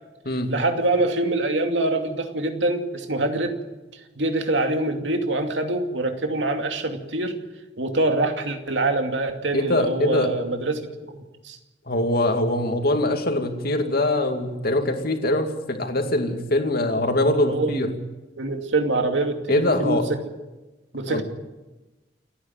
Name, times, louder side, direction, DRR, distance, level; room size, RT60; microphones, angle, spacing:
voice 1, 0.5-3.6 4.2-7.4 7.8-11.2 11.4-11.6 17.5-17.8 18.4-20.0 20.9-21.2, right 2 dB, 80° right, 5 dB, 2.5 m, -24 dB
voice 2, 9.5-10.3 11.9-17.9 19.5-20.1 21.1-21.2, left 1 dB, 55° left, 5 dB, 2.5 m, -23 dB
29.0 x 10.0 x 9.3 m, 1.1 s
head